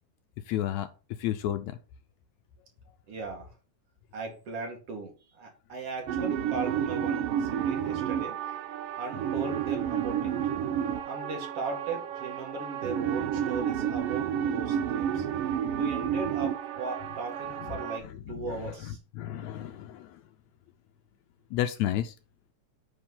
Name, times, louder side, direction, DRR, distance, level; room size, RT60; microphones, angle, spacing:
voice 1, 0.5-0.9 1.2-1.8 18.3-18.5 18.9-20.2 21.5-22.1, left 12 dB, 75° left, 9 dB, 1.9 m, -31 dB
voice 2, 3.1-3.5 4.1-8.4 9.0-10.3 11.1-15.2 15.7-19.0, right 3 dB, 50° right, 1 dB, 2.9 m, -38 dB
sound 1, 6.1-18.0, right 9 dB, 90° right, 1.3 m, -31 dB
8.9 x 4.1 x 5.5 m, 0.33 s
omnidirectional pair, 3.5 m